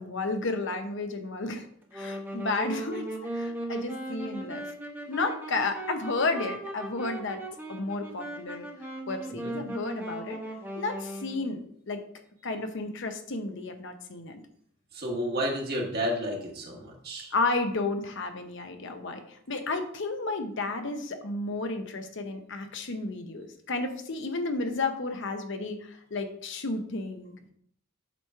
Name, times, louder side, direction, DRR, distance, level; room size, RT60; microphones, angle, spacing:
voice 1, 0.0-1.7 1.9-3.1 3.3-4.7 5.1-7.4 7.7-8.7 9.1-10.4 10.8-12.0 12.4-14.4 17.3-27.5, left 3 dB, 60° left, 6 dB, 0.8 m, -32 dB
Wind instrument woodwind instrument, 1.8-11.5, right 1 dB, 10° right, 1.2 m, -38 dB
voice 2, 14.9-17.3, equal, 50° right, -1 dB, 1.7 m, -31 dB
8.2 x 3.1 x 5.6 m, 0.65 s
head